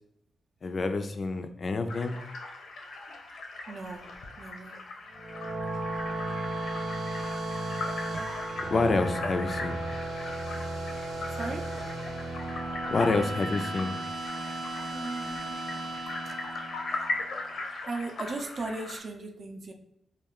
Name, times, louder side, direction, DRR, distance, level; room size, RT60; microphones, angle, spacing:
voice 1, 0.6-2.2 8.7-9.8 12.9-14.0, left 3 dB, 45° left, 8 dB, 0.3 m, -28 dB
sound 1, 1.9-19.0, left 3 dB, 85° left, 0.7 m, -39 dB
voice 2, 3.7-4.1 4.4-4.8 11.3-11.7 14.9-15.6 16.3-16.4 17.7-19.7, right 3 dB, 50° right, 4 dB, 0.5 m, -37 dB
sound 2, 5.1-17.5, right 2 dB, 80° right, 0.8 m, -35 dB
3.2 x 2.4 x 3.5 m, 0.79 s
wide cardioid pair, 115°, 0 cm